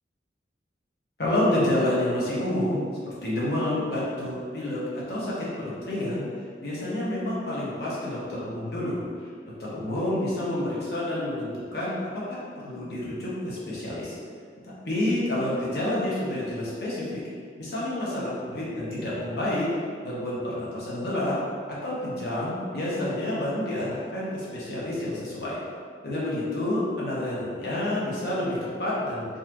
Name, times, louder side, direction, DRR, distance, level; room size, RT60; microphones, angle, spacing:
voice 1, 1.2-2.8 3.2-6.2 6.6-9.0 9.6-11.9 12.3-14.1 14.9-17.2 17.6-19.7 20.0-21.4 21.8-25.6 26.0-29.3, left 1 dB, 60° left, -8 dB, 1.1 m, -28 dB
4.0 x 2.5 x 2.9 m, 2.1 s
head